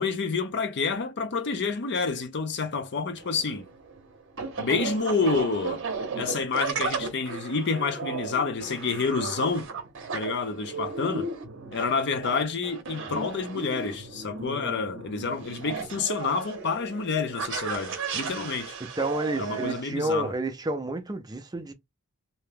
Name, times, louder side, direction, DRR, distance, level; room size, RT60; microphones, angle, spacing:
voice 1, 0.0-3.6 4.6-5.8 6.2-9.7 10.1-11.3 11.7-18.8 19.4-20.3, left 4 dB, 50° left, 0.6 m, -28 dB
sound 1, 3.2-19.8, right 4 dB, 55° right, 0.7 m, -35 dB
voice 2, 19.0-21.7, right 1 dB, 15° right, 0.4 m, -30 dB
2.7 x 2.2 x 3.3 m
head